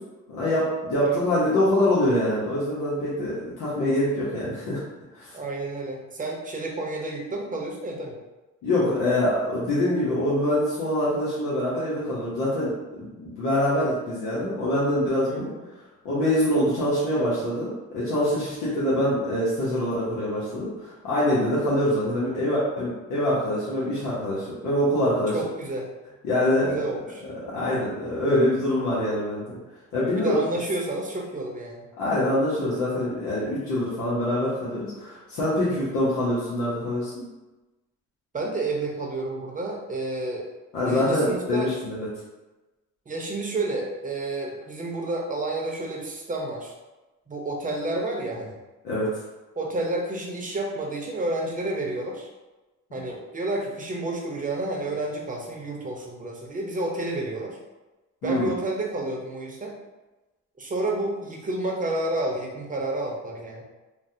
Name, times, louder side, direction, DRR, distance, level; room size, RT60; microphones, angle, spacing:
voice 1, 0.3-4.8 5.1-5.3 8.6-15.5 16.0-25.4 26.2-26.8 27.5-29.6 29.9-30.4 32.0-37.2 40.7-42.1 48.8-49.1 52.9-53.0 58.2-58.5, left 1 dB, 85° left, -9 dB, 0.9 m, -24 dB
voice 2, 5.3-8.2 15.3-15.6 25.3-25.9 26.5-27.2 30.1-31.9 35.6-35.9 38.3-40.4 40.8-41.7 43.1-46.7 47.3-48.5 49.6-52.3 52.9-57.6 58.2-59.7 60.6-63.6, right 2 dB, 25° right, -1 dB, 0.8 m, -30 dB
3.2 x 2.2 x 2.7 m, 1.1 s
cardioid pair, 90°, 30 cm